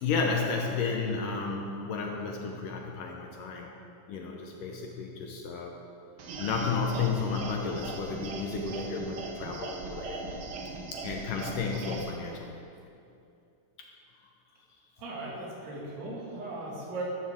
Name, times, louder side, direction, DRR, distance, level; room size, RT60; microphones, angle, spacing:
voice 1, 0.0-3.7 4.1-5.8 6.4-10.2 10.9-12.6, left 4 dB, 75° left, 1 dB, 2.1 m, -32 dB
sound 1, 6.2-12.1, right 3 dB, 70° right, 2.9 m, -39 dB
voice 2, 15.0-17.0, right 2 dB, 90° right, -4 dB, 4.3 m, -38 dB
14.0 x 12.0 x 3.6 m, 2.6 s
omnidirectional pair, 4.5 m